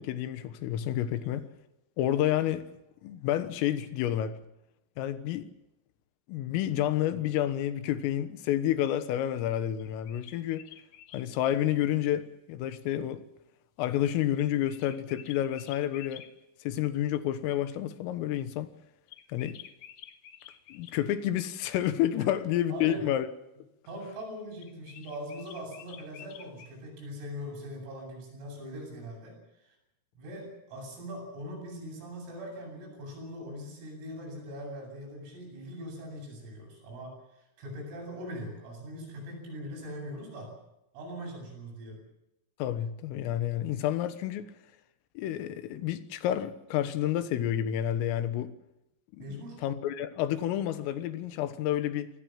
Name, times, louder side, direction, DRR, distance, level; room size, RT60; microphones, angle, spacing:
voice 1, 0.0-1.5 2.0-2.7 3.0-4.4 5.0-5.5 6.3-10.7 11.1-13.2 13.8-16.2 16.7-18.7 19.3-19.6 20.7-23.3 42.6-44.5 45.2-48.5 49.1-52.1, left 11 dB, 90° left, 3.9 m, -29 dB
sound 1, 9.8-11.3 14.3-16.3 19.1-21.0 24.6-26.8, left 10 dB, 65° left, 2.3 m, -50 dB
voice 2, 22.7-23.0 23.9-29.4 30.2-37.1 37.6-40.5 40.9-42.0 49.2-49.6, equal, 90° right, 11.0 m, -41 dB
26.0 x 18.5 x 7.6 m
omnidirectional pair, 5.8 m